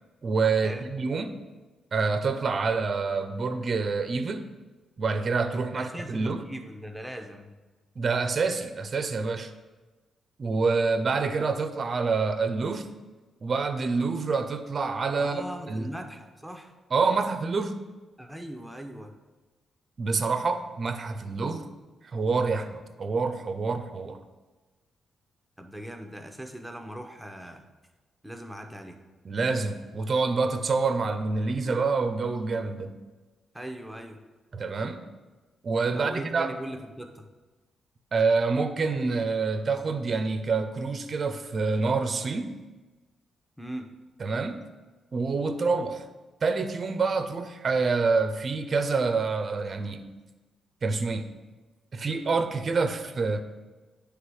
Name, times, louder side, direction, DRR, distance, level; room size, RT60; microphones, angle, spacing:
voice 1, 0.2-1.4 1.9-4.5 5.0-6.4 8.0-9.5 10.4-12.9 13.4-15.9 16.9-17.8 20.0-21.7 22.1-24.2 29.2-33.0 34.5-35.0 35.6-36.5 38.1-42.6 44.2-44.6 45.1-46.0 46.4-50.1 50.8-51.3 51.9-53.4, right 4 dB, 45° right, 9 dB, 0.5 m, -27 dB
voice 2, 5.7-7.5 15.2-16.7 18.2-19.1 25.6-27.6 28.2-29.0 33.5-34.2 35.9-37.3 43.6-43.9, right 1 dB, 5° right, 4 dB, 0.8 m, -39 dB
9.4 x 3.4 x 4.6 m, 1.2 s
cardioid pair, 95°, 0 cm